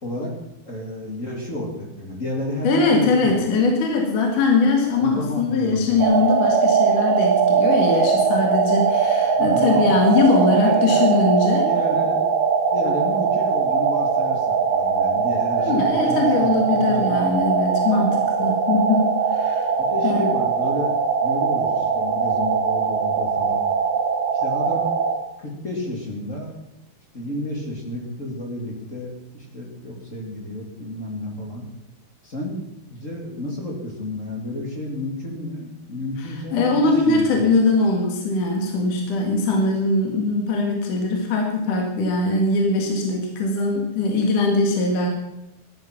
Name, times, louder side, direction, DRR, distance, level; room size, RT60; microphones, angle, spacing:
voice 1, 0.0-0.3 0.7-3.4 5.0-6.3 9.4-9.8 10.5-11.1 11.7-12.2 12.7-17.2 19.8-23.6 24.3-24.8 25.4-26.5 27.1-31.6 32.2-32.5 32.9-37.5, left 1 dB, 20° left, 0 dB, 2.4 m, -31 dB
voice 2, 2.6-11.7 15.6-19.7 20.0-20.3 36.2-45.1, left 3 dB, 55° left, 1 dB, 3.3 m, -21 dB
sound 1, 6.0-25.2, right 6 dB, 60° right, 3.6 m, -21 dB
15.0 x 11.5 x 6.0 m, 0.88 s
omnidirectional pair, 4.7 m